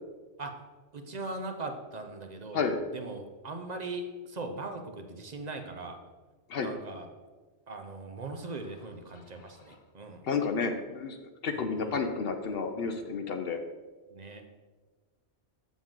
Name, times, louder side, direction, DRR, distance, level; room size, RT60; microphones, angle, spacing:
voice 1, 0.9-2.6 2.9-6.0 6.6-7.1 7.7-10.3 11.5-12.0 14.1-14.4, right 2 dB, 45° right, 5 dB, 0.7 m, -40 dB
voice 2, 10.2-11.2 11.4-13.6, left 5 dB, 65° left, 6 dB, 0.8 m, -31 dB
7.5 x 7.1 x 3.7 m, 1.3 s
omnidirectional pair, 1.1 m